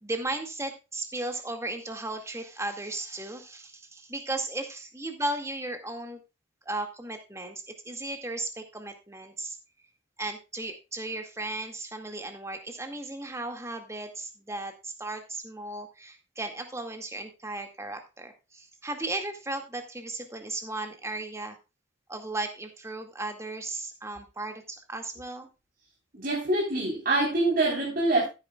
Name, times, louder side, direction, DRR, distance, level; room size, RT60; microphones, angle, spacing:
voice 1, 0.0-6.2 6.6-9.6 10.2-21.6 22.1-25.5, right 2 dB, 15° right, 5 dB, 2.0 m, -36 dB
voice 2, 26.1-28.2, right 2 dB, 45° right, -5 dB, 3.9 m, -25 dB
15.0 x 9.7 x 2.3 m, 0.28 s
head